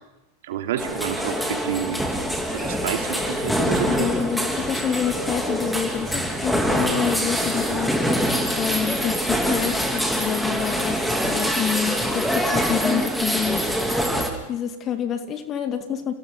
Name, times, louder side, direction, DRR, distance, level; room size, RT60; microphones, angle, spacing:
voice 1, 0.4-2.0 2.5-4.1, right 10 dB, 55° right, 3 dB, 3.3 m, -29 dB
sound 1, 0.8-14.3, equal, ahead, 3.1 m, -24 dB
voice 2, 3.9-7.9 8.5-13.7 14.5-16.1, left 9 dB, 30° left, 8 dB, 2.1 m, -28 dB
29.5 x 28.5 x 4.1 m, 0.99 s
figure-of-eight pair, 90°, 0 cm